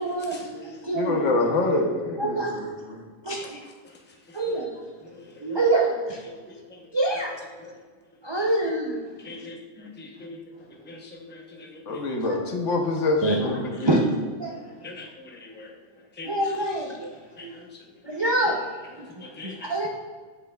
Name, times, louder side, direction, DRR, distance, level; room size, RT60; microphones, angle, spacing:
voice 1, 0.0-1.3 2.2-2.8 3.2-3.6 4.3-4.7 5.4-6.2 6.9-7.3 8.2-9.0 12.2-12.3 13.2-13.3 13.7-14.0 14.4-14.6 16.2-17.1 17.4-17.6 18.0-19.1 19.4-19.9, right 2 dB, 40° right, -1 dB, 0.4 m, -26 dB
voice 2, 0.9-3.0 11.9-14.0, left 2 dB, 70° left, 2 dB, 1.2 m, -26 dB
voice 3, 5.0-5.6 6.4-6.9 7.6-7.7 9.2-10.4 10.8-12.1 14.8-15.7 16.2-16.4 17.4-17.8 19.2-19.7, left 3 dB, 10° left, -1 dB, 0.6 m, -43 dB
8.1 x 5.6 x 2.3 m, 1.5 s
omnidirectional pair, 1.3 m